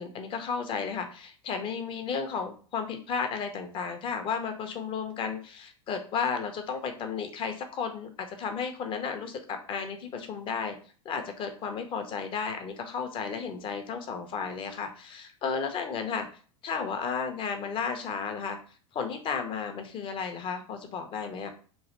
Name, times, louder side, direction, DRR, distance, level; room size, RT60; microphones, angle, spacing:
voice 1, 0.0-10.8 11.0-16.3 16.6-18.6 18.9-21.5, left 6 dB, 30° left, 6 dB, 0.6 m, -33 dB
3.1 x 2.5 x 2.9 m, 0.40 s
figure-of-eight pair, 85°, 17 cm